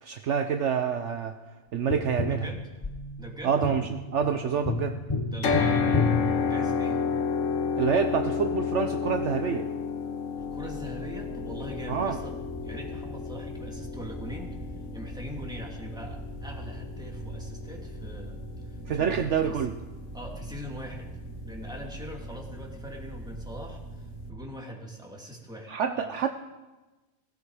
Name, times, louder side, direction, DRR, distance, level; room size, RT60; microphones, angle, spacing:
voice 1, 0.0-1.4 1.7-2.4 3.4-5.0 7.8-9.7 11.9-12.2 18.9-19.8 25.7-26.3, right 7 dB, 65° right, 7 dB, 1.0 m, -27 dB
Tap, 1.9-7.2 9.8-9.9, left 3 dB, 20° left, 1.1 m, -31 dB
voice 2, 2.3-2.7 3.2-3.5 5.2-7.1 10.4-12.4 12.6-19.7 20.1-21.1 21.4-26.2, equal, 5° right, -2 dB, 2.7 m, -42 dB
sound 1, 5.4-19.6, left 5 dB, 65° left, 1.4 m, -31 dB
sound 2, 10.4-24.4, right 2 dB, 80° right, 2.3 m, -42 dB
17.5 x 16.0 x 4.9 m, 1.2 s
omnidirectional pair, 1.4 m